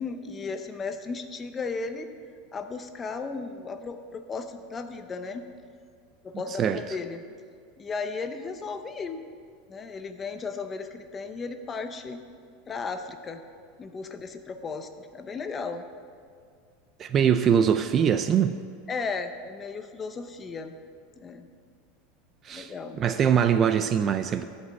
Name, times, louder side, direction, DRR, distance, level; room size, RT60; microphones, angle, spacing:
voice 1, 0.0-2.1 2.5-5.5 6.2-7.2 7.8-9.2 9.7-12.2 12.7-13.4 13.8-15.9 17.1-17.2 18.9-20.7 21.2-21.5 22.5-23.0, left 4 dB, 15° left, 8 dB, 0.6 m, -35 dB
voice 2, 17.0-18.5 22.5-22.7 23.0-24.4, right 8 dB, 25° right, 10 dB, 0.3 m, -22 dB
11.5 x 5.3 x 8.1 m, 2.2 s
supercardioid pair, 160°, 0 cm